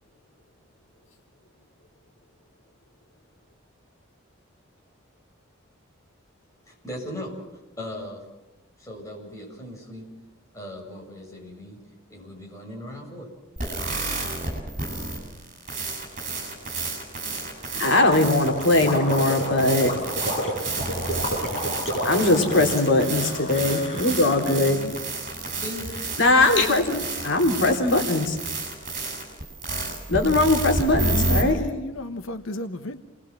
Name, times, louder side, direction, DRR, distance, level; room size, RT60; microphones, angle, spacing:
voice 1, 6.6-7.4 7.8-8.2 8.8-10.1 10.5-11.8 12.1-13.3 25.6-26.0, left 1 dB, 15° left, 7.4 m, -38 dB
sound 1, 13.6-31.4, right 2 dB, 40° right, 7.4 m, -30 dB
voice 2, 17.7-19.9 22.0-24.8 26.2-28.4 30.1-31.6, left 2 dB, 65° left, 3.5 m, -20 dB
Gurgling, 17.8-24.7, equal, 30° left, 7.5 m, -31 dB
voice 3, 23.2-23.8 24.5-24.9 30.9-33.0, left 1 dB, 85° left, 1.2 m, -34 dB
29.0 x 21.0 x 7.5 m
head